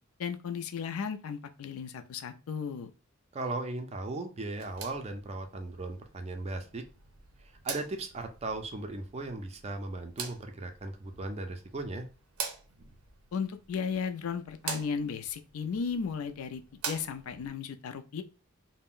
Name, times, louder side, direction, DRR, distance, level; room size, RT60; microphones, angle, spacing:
voice 1, 0.2-2.9 13.3-18.2, left 6 dB, 80° left, 8 dB, 0.4 m, -35 dB
voice 2, 3.3-6.8 7.6-12.1, right 2 dB, 30° right, 6 dB, 0.4 m, -37 dB
sound 1, 4.4-17.5, right 6 dB, 85° right, 0.6 m, -45 dB
2.4 x 2.1 x 3.5 m, 0.33 s
head